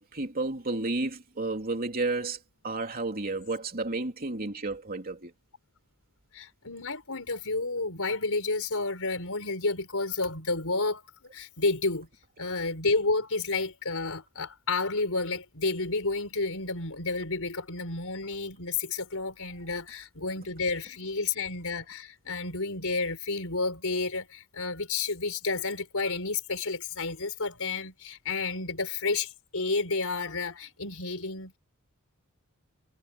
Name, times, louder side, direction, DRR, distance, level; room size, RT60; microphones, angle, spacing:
voice 1, 0.0-2.4 2.6-5.3, right 2 dB, 40° right, 3.2 m, -31 dB
voice 2, 6.3-11.0 11.3-12.1 12.4-31.6, left 3 dB, 65° left, 6.1 m, -31 dB
head